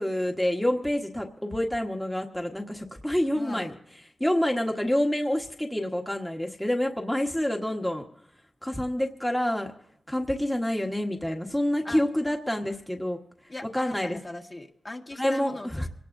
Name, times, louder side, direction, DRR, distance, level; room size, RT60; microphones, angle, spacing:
voice 1, 0.0-3.7 4.2-8.0 8.6-9.7 10.1-13.2 13.7-14.2 15.2-15.9, left 1 dB, 10° left, 2 dB, 1.4 m, -27 dB
voice 2, 3.4-3.8 11.8-12.0 13.5-15.9, left 2 dB, 30° left, 1 dB, 1.7 m, -39 dB
25.0 x 18.5 x 2.7 m, 0.73 s
wide cardioid pair, 90°, 0 cm